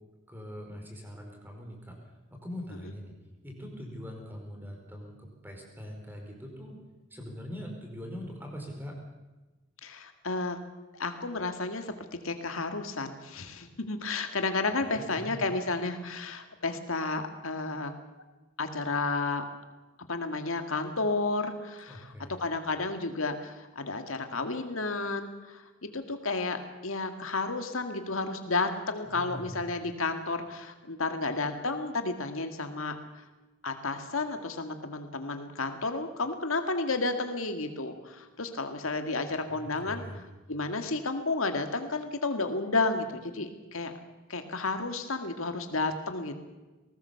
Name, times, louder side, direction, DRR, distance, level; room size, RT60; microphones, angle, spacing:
voice 1, 0.3-2.0 2.3-3.1 3.4-6.8 7.1-9.0 14.9-15.4 21.9-22.5 29.0-29.6 39.5-40.2, equal, 10° right, 1 dB, 4.6 m, -42 dB
voice 2, 9.8-10.6 11.0-17.9 18.6-19.4 20.1-22.1 22.4-33.0 33.6-40.0 40.5-43.9 44.3-46.4, left 3 dB, 80° left, 7 dB, 1.9 m, -32 dB
21.0 x 18.5 x 7.0 m, 1.2 s
head